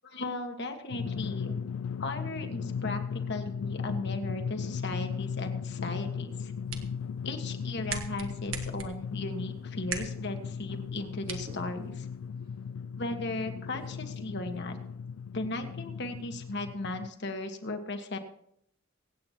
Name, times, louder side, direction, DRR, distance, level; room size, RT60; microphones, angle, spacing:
voice 1, 0.0-1.6 2.0-6.5 7.2-12.1 13.0-14.8 15.3-18.2, left 2 dB, 55° left, 5 dB, 1.5 m, -36 dB
Drum, 0.9-17.1, left 6 dB, 70° left, 0.3 m, -37 dB
sound 1, 6.3-12.3, right 6 dB, 65° right, 1.4 m, -43 dB
sound 2, 9.7-9.9 10.8-11.2 11.4-12.0 12.4-12.6 13.7-14.8, equal, 45° right, 2.4 m, -53 dB
24.0 x 8.8 x 2.9 m, 0.72 s
head